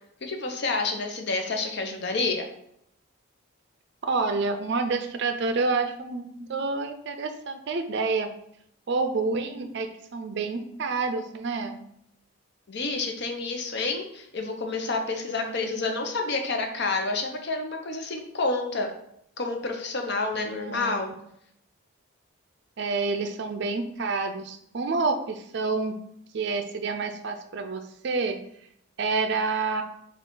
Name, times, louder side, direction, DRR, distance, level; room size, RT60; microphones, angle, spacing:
voice 1, 0.2-2.5 12.7-18.9 19.4-21.1, left 3 dB, 50° left, 4 dB, 0.7 m, -29 dB
voice 2, 4.0-8.3 8.9-11.8 15.4-15.9 20.4-21.1 22.8-26.0 26.3-28.4 29.0-29.8, right 4 dB, 55° right, 7 dB, 0.4 m, -28 dB
5.8 x 2.4 x 3.7 m, 0.73 s
head